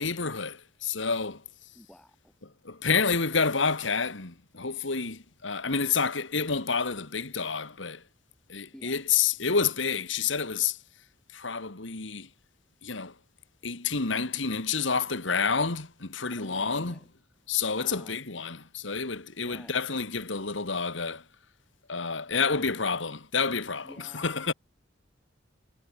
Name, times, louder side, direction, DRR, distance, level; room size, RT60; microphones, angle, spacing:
voice 1, 0.0-1.4 2.7-8.0 8.5-10.8 11.3-12.3 12.8-13.1 13.6-16.9 17.5-21.2 21.9-24.5, left 5 dB, 70° left, 2.1 m, -29 dB
voice 2, 1.7-2.3 8.7-9.0 16.4-17.1 17.7-18.2 19.4-19.8 22.3-22.7 23.8-24.4, equal, 5° left, 5.1 m, -50 dB
head